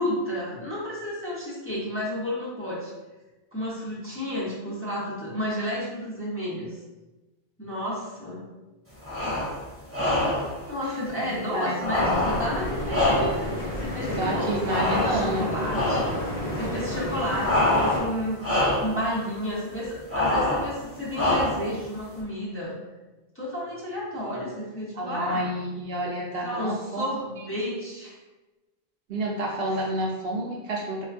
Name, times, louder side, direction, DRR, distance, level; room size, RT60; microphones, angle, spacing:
voice 1, 0.0-2.9 3.5-6.8 7.6-8.4 10.7-14.6 14.9-18.4 18.8-22.8 23.3-25.5 26.4-28.2, equal, 15° left, -8 dB, 0.7 m, -31 dB
sound 1, 9.0-9.6 9.9-10.5 11.8-13.6 14.7-15.4 15.7-16.2 17.4-18.1 18.4-19.0 20.1-20.7 21.1-21.7, left 1 dB, 15° right, 0.9 m, -25 dB
voice 2, 10.8-12.1 14.2-15.5 17.3-17.4 24.9-27.0 29.1-31.1, right 1 dB, 65° right, -2 dB, 0.8 m, -30 dB
sound 2, 11.9-18.0, left 1 dB, 40° left, 1.0 m, -31 dB
4.4 x 2.3 x 2.4 m, 1.1 s
omnidirectional pair, 1.1 m